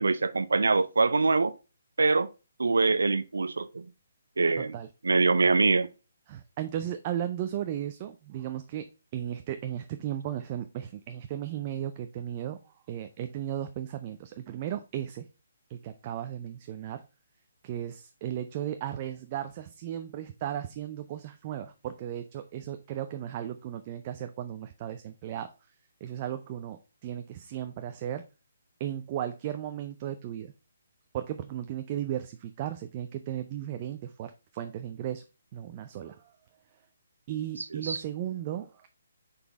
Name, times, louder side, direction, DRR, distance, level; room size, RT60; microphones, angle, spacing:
voice 1, 0.0-1.5 2.0-2.3 2.6-3.9 4.4-4.7 5.0-5.9 37.6-38.0, right 3 dB, 90° right, 0.4 m, -24 dB
voice 2, 4.6-4.9 6.3-12.6 12.9-15.3 15.7-17.0 17.6-25.5 26.0-28.3 28.8-30.5 31.1-35.2 35.5-36.3 37.3-38.9, right 11 dB, 30° right, 0.4 m, -35 dB
5.8 x 4.1 x 4.0 m
hypercardioid pair, 160°, 0 cm